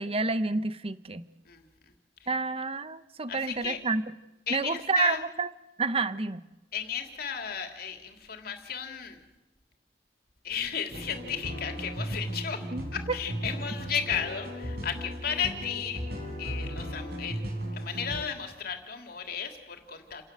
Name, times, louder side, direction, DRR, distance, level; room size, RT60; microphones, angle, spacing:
voice 1, 0.0-1.3 2.3-4.0 4.5-5.5 5.8-6.4 12.7-12.9, right 3 dB, 35° right, 13 dB, 0.9 m, -29 dB
voice 2, 3.3-3.8 4.5-5.2 6.7-9.2 10.4-12.7 12.9-16.0 16.4-17.4 17.7-20.3, left 7 dB, 55° left, 5 dB, 3.1 m, -34 dB
sound 1, 10.9-18.2, equal, 60° right, 5.4 m, -36 dB
30.0 x 17.5 x 7.7 m, 1.0 s
head